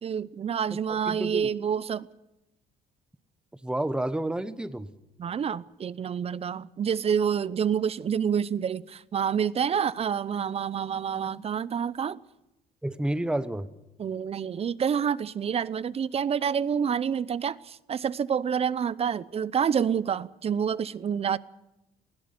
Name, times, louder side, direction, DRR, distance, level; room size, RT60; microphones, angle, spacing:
voice 1, 0.0-2.1 5.2-12.2 14.0-21.4, right 7 dB, 35° right, 20 dB, 0.7 m, -28 dB
voice 2, 0.7-1.5 3.6-4.9 12.8-13.7, right 1 dB, 5° right, 13 dB, 1.1 m, -30 dB
19.5 x 16.5 x 9.6 m, 0.91 s
cardioid pair, 110°, 17 cm